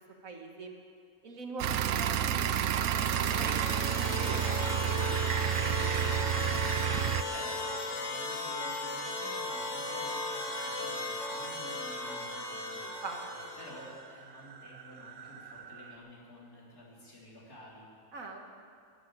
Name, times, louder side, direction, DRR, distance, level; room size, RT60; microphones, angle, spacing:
voice 1, 0.2-0.8 1.2-6.2 12.8-13.2 18.1-18.4, right 3 dB, 65° right, 2 dB, 1.9 m, -44 dB
sound 1, 1.6-7.2, right 10 dB, 80° right, 1.1 m, -30 dB
sound 2, 2.8-14.0, left 2 dB, 55° left, 1.9 m, -37 dB
voice 2, 6.9-17.9, equal, 75° left, -5 dB, 4.0 m, -51 dB
sound 3, 10.3-16.0, right 6 dB, 45° right, 0.7 m, -50 dB
12.0 x 11.5 x 8.8 m, 2.3 s
omnidirectional pair, 1.6 m